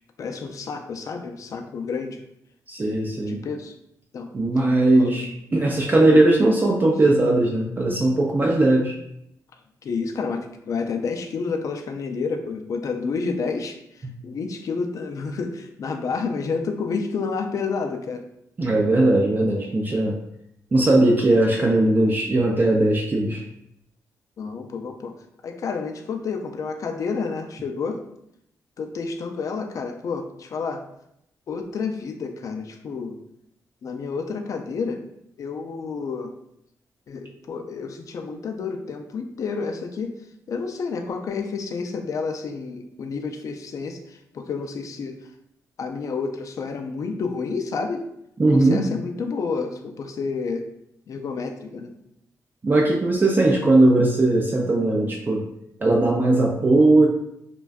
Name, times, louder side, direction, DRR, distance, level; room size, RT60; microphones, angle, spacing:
voice 1, 0.2-2.2 2.9-3.7 4.1-4.3 4.7-5.1 9.8-18.2 24.4-25.1 25.4-28.0 28.8-30.8 31.5-33.2 33.8-35.0 35.4-36.3 37.1-40.2 40.5-45.2 45.8-48.0 48.4-50.7 51.1-52.0, left 4 dB, 60° left, 5 dB, 0.3 m, -30 dB
voice 2, 2.7-3.4 4.3-8.9 14.0-14.1 18.6-20.2 20.7-23.4 48.4-48.8 52.6-55.4 55.8-57.1, right 2 dB, 30° right, -1 dB, 0.4 m, -19 dB
2.5 x 2.2 x 2.3 m, 0.77 s
cardioid pair, 80°, 7 cm